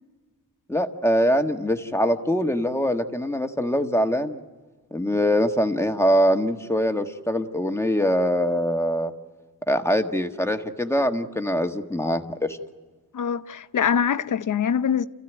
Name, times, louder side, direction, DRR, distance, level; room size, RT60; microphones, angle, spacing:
voice 1, 0.7-4.4 4.9-9.1 9.7-12.6, equal, 10° left, 1.6 m, -23 dB
voice 2, 13.1-15.0, left 7 dB, 60° left, 0.9 m, -23 dB
29.5 x 15.0 x 9.3 m
wide cardioid pair, 110°, 35 cm